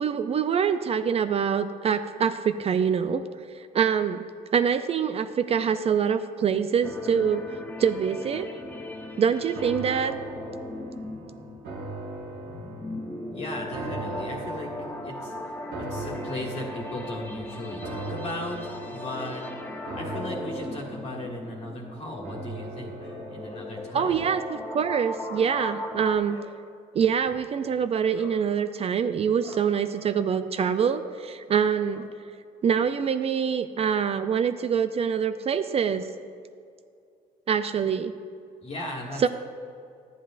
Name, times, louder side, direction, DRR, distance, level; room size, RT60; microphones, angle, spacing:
voice 1, 0.0-3.2 3.5-4.3 4.5-7.4 7.8-8.5 9.2-10.2 23.9-26.4 26.9-32.0 32.6-36.1 37.5-38.1 39.2-39.3, right 7 dB, 35° right, 10 dB, 0.4 m, -25 dB
sound 1, 6.8-26.2, left 1 dB, 10° left, 0.7 m, -38 dB
sound 2, 9.5-24.8 25.2-25.3, right 2 dB, 80° right, 1.6 m, -40 dB
voice 2, 13.3-14.7 15.0-24.2 26.3-26.5 28.1-28.4 29.4-29.7 29.9-30.3 30.9-31.1 31.9-32.0 38.6-39.2, left 1 dB, 40° left, -8 dB, 1.7 m, -37 dB
12.0 x 10.0 x 2.5 m, 2.4 s
cardioid pair, 110°, 17 cm